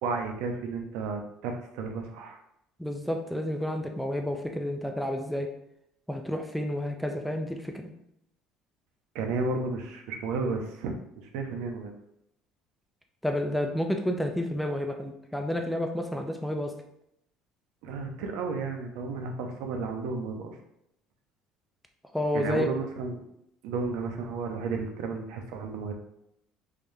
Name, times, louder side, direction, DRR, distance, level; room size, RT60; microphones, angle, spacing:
voice 1, 0.0-2.4 9.1-11.0 11.3-11.9 17.8-20.6 22.3-23.2 23.6-25.9, right 4 dB, 75° right, 4 dB, 0.6 m, -32 dB
voice 2, 2.8-5.5 6.1-7.9 13.2-16.8 22.1-22.7, left 1 dB, ahead, 4 dB, 0.3 m, -30 dB
3.5 x 3.3 x 2.7 m, 0.76 s
cardioid pair, 150°, 0 cm